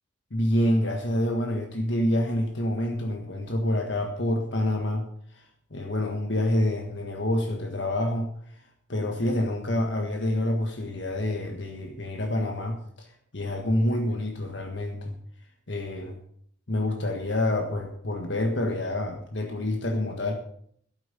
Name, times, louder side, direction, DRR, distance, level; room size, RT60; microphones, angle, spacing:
voice 1, 0.3-5.4 5.7-8.3 8.9-13.1 13.3-15.1 15.7-16.2 16.7-20.3, left 1 dB, 65° left, 3 dB, 1.5 m, -27 dB
12.0 x 9.0 x 6.9 m, 0.65 s
head